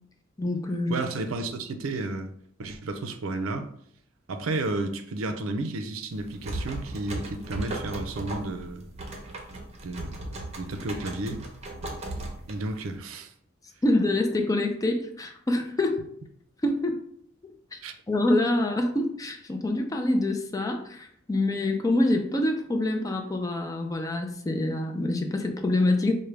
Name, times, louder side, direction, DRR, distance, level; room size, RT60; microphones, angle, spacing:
voice 1, 0.4-1.0 13.8-16.1 16.6-17.0 17.4-17.8 18.1-26.1, left 1 dB, 15° left, 0.4 m, -26 dB
voice 2, 0.9-2.3 2.6-3.7 4.3-8.8 9.8-11.5 12.5-13.3 17.8-17.9, right 2 dB, 90° right, 0.5 m, -32 dB
sound 1, 6.1-12.9, right 2 dB, 35° right, 0.7 m, -37 dB
4.8 x 2.2 x 3.3 m
head